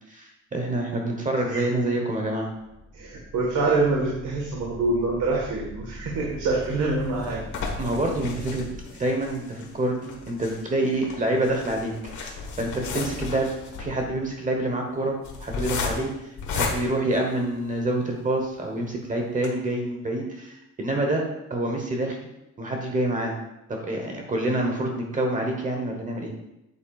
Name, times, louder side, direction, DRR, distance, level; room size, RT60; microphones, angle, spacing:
voice 1, 0.1-2.5 7.8-8.7 9.0-12.3 12.6-13.5 13.8-16.1 16.5-21.2 21.5-22.3 22.6-23.3 23.7-26.3, right 1 dB, 25° right, 2 dB, 1.0 m, -27 dB
sound 1, 2.5-8.8, left 1 dB, 10° left, 1.8 m, -41 dB
voice 2, 2.9-7.4, right 3 dB, 70° right, -2 dB, 1.5 m, -25 dB
sound 2, 6.5-17.9 18.4-18.5 18.8-18.9 19.3-19.5, left 4 dB, 65° left, 1.5 m, -34 dB
8.6 x 8.5 x 2.4 m, 0.90 s
cardioid pair, 170°, 31 cm